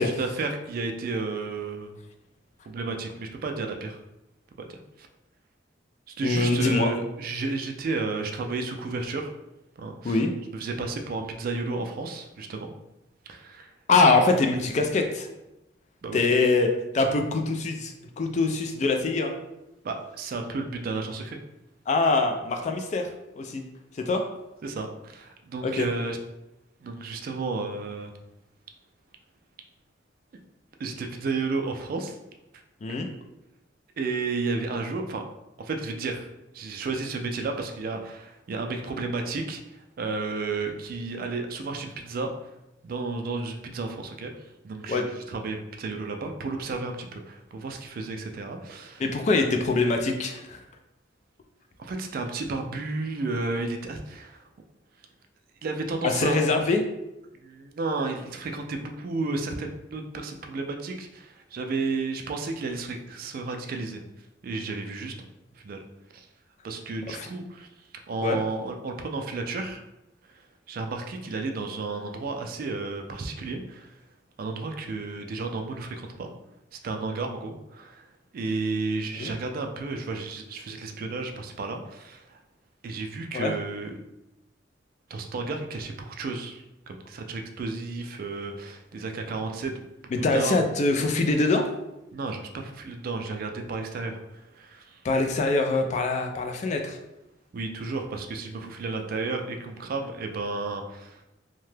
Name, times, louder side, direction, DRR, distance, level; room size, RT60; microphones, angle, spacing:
voice 1, 0.0-2.0 2.7-4.0 4.6-5.1 6.2-9.3 9.8-10.2 10.5-12.7 13.3-13.7 14.1-14.2 16.0-16.2 19.8-21.4 24.6-26.2 26.8-28.1 30.8-32.2 34.0-35.2 35.6-42.3 42.8-49.0 51.8-54.4 55.6-56.5 57.4-64.0 64.4-65.1 65.6-65.8 66.1-66.3 66.6-67.7 68.1-69.8 70.3-73.9 74.4-76.3 76.7-78.1 78.3-82.4 82.8-84.0 85.1-89.8 90.2-90.6 92.1-95.0 97.5-101.2, right 3 dB, 50° right, 4 dB, 0.3 m, -32 dB
voice 2, 6.2-6.9 10.0-10.3 13.9-15.3 16.1-19.3 21.9-23.1 23.4-23.6 24.1-24.2 25.6-25.9 32.8-33.1 44.9-45.0 49.0-50.6 56.0-56.8 67.1-67.3 68.2-68.4 79.2-79.3 83.3-83.5 90.1-91.7 95.0-97.0, left 3 dB, 35° left, 4 dB, 0.3 m, -23 dB
2.8 x 2.2 x 3.2 m, 0.92 s
head